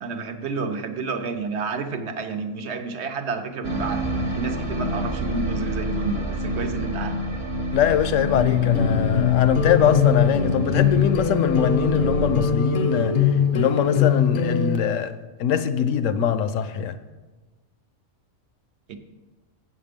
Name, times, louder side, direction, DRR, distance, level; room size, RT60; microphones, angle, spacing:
voice 1, 0.0-7.2 18.9-19.0, right 4 dB, 60° right, 7 dB, 1.0 m, -30 dB
sound 1, 3.6-12.4, right 1 dB, 30° right, 0.6 m, -29 dB
voice 2, 7.7-15.1 15.4-17.0, left 9 dB, 75° left, 12 dB, 0.9 m, -22 dB
sound 2, 8.3-14.8, left 6 dB, 50° left, 0.6 m, -21 dB
7.9 x 7.3 x 5.1 m, 1.2 s
omnidirectional pair, 1.4 m